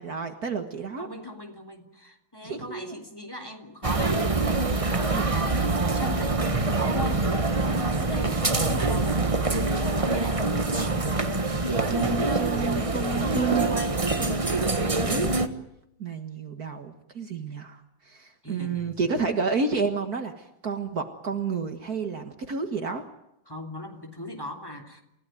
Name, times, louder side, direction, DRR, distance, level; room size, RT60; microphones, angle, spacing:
voice 1, 0.0-1.1 2.4-3.0 5.1-5.4 10.7-11.3 11.8-13.8 14.6-15.3 16.0-23.0, right 5 dB, 50° right, 6 dB, 2.1 m, -31 dB
voice 2, 1.0-4.2 4.9-6.4 6.7-7.3 7.6-9.2 9.9-10.4 13.5-14.0 18.4-19.0 23.5-25.0, left 1 dB, 10° left, 4 dB, 3.2 m, -38 dB
sound 1, 3.8-15.5, right 3 dB, 20° right, 1.2 m, -25 dB
29.5 x 16.0 x 9.2 m, 0.84 s
omnidirectional pair, 2.1 m